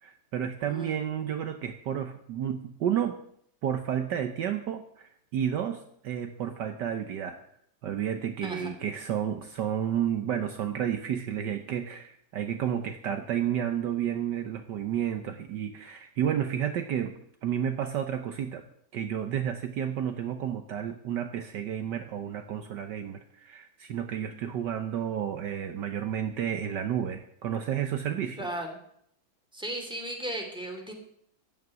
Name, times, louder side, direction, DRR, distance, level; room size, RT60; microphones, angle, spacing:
voice 1, 0.0-3.2 3.6-7.4 7.8-18.6 18.9-28.5, right 9 dB, 65° right, 7 dB, 1.4 m, -31 dB
voice 2, 0.6-1.0 8.4-8.7 28.4-28.8 29.5-30.9, right 1 dB, ahead, 2 dB, 2.7 m, -36 dB
14.5 x 6.0 x 9.3 m, 0.69 s
omnidirectional pair, 2.1 m